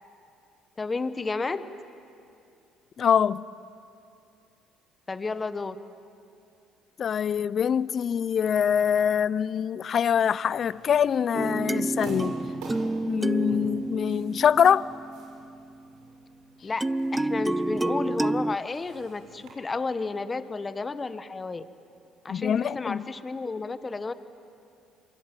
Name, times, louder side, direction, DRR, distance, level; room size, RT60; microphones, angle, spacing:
voice 1, 0.8-1.7 5.1-5.8 16.6-16.8 17.1-21.6 22.2-24.1, left 3 dB, 25° left, 1.3 m, -32 dB
voice 2, 3.0-3.4 7.0-12.3 13.0-14.9 22.3-23.1, left 8 dB, 50° left, 0.6 m, -24 dB
sound 1, 10.4-19.5, right 2 dB, 75° right, 6.5 m, -47 dB
sound 2, 11.3-15.6 16.8-18.6, right 2 dB, 15° right, 0.5 m, -29 dB
24.5 x 23.5 x 9.1 m
supercardioid pair, 70°, 0 cm